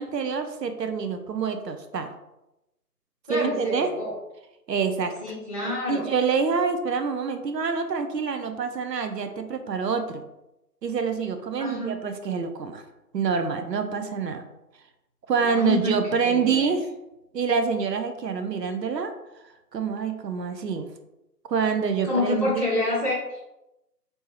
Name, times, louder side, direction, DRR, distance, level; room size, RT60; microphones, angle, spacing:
voice 1, 0.0-2.1 3.3-3.9 4.7-5.1 5.9-10.2 10.8-12.8 13.1-14.4 15.3-16.8 17.3-19.1 19.7-20.9 21.5-22.6, right 5 dB, 85° right, 8 dB, 0.7 m, -26 dB
voice 2, 3.3-4.1 5.2-6.1 11.6-12.0 15.4-16.7 22.0-23.5, left 2 dB, 20° right, -10 dB, 1.1 m, -28 dB
3.5 x 2.7 x 2.9 m, 0.92 s
figure-of-eight pair, 175°, 48 cm